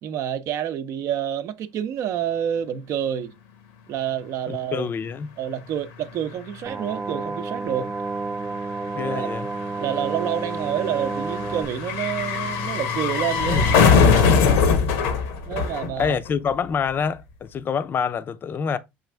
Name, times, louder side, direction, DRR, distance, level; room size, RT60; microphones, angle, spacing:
voice 1, 0.0-3.3 3.9-4.9 5.4-7.9 9.1-9.3 9.8-13.7 15.5-16.2, right 10 dB, 60° right, 0.6 m, -28 dB
voice 2, 4.5-5.3 8.9-9.5 13.5-13.8 14.2-14.6 16.0-18.8, left 6 dB, 35° left, 0.5 m, -27 dB
sound 1, 5.8-5.9 6.1-16.5 16.8-16.9, left 5 dB, 80° left, 0.9 m, -22 dB
sound 2, 6.7-11.7, right 3 dB, 20° right, 0.3 m, -30 dB
6.3 x 2.5 x 3.3 m
supercardioid pair, 85°, 6 cm